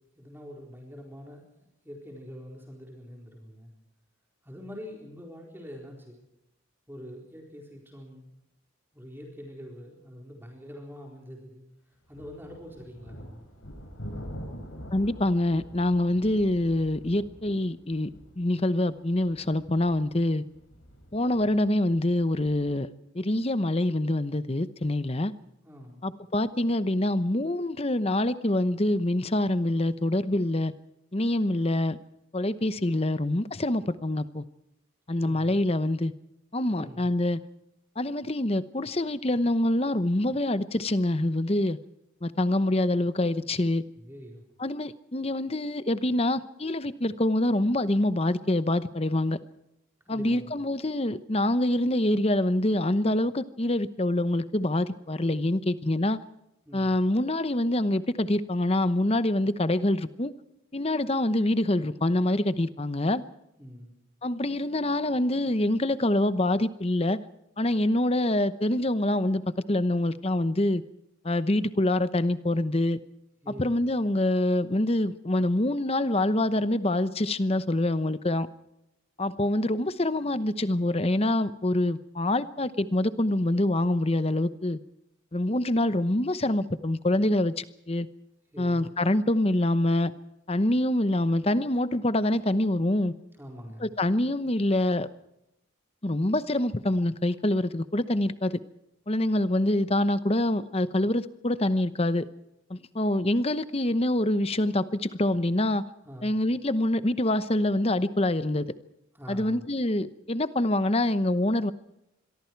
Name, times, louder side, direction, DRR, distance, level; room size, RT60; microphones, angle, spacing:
voice 1, 0.2-1.4 1.8-3.7 4.4-6.2 6.9-8.3 8.9-11.6 12.1-13.5 25.6-26.0 35.1-35.6 36.7-37.1 44.0-44.4 50.1-50.5 56.6-57.0 63.6-64.0 73.4-73.8 88.5-88.8 93.4-94.0 106.0-106.4 109.1-109.7, equal, 10° right, 0 dB, 4.2 m, -44 dB
sound 1, 12.1-22.7, equal, 70° left, 6.2 m, -45 dB
voice 2, 14.9-18.1 18.4-20.4 21.1-22.9 23.1-25.3 26.0-30.7 31.1-32.0 32.3-34.4 35.1-36.1 36.5-37.4 38.0-41.8 42.2-43.8 44.6-49.4 50.1-56.2 56.7-60.3 60.7-63.2 64.2-67.2 67.6-69.4 69.7-70.8 71.2-73.0 73.6-78.5 79.2-84.8 85.3-88.1 88.6-90.1 90.5-93.1 93.8-95.1 96.0-98.6 99.1-102.3 102.7-105.8 106.2-108.7 109.3-111.7, left 1 dB, 30° left, 13 dB, 0.9 m, -25 dB
26.0 x 22.5 x 4.6 m, 0.85 s
head